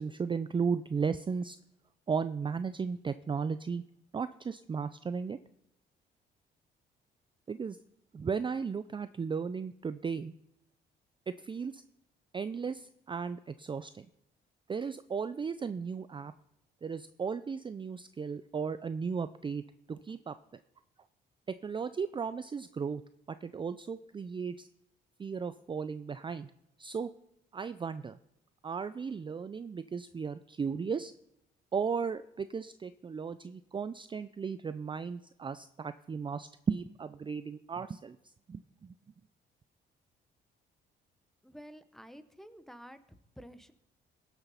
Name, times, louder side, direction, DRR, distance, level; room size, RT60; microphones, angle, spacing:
voice 1, 0.0-1.6 2.1-3.8 4.1-5.4 7.5-7.8 8.1-10.3 11.3-11.8 12.3-14.1 14.7-16.3 16.8-19.6 19.9-20.3 21.5-23.0 23.4-24.7 25.2-26.5 26.8-27.1 27.5-28.2 28.6-31.1 31.7-38.9, right 5 dB, 25° right, 13 dB, 0.4 m, -35 dB
voice 2, 41.4-43.0 43.4-43.7, equal, ahead, 12 dB, 1.0 m, -50 dB
18.0 x 6.9 x 5.6 m, 0.83 s
cardioid pair, 90°, 20 cm